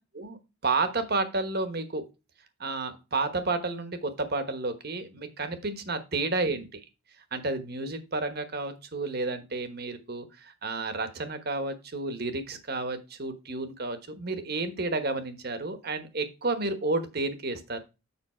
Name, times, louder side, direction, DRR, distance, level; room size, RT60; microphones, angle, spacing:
voice 1, 0.6-2.0 2.6-6.8 7.3-17.8, right 3 dB, 50° right, 9 dB, 1.2 m, -31 dB
7.1 x 5.5 x 4.3 m, 0.28 s
head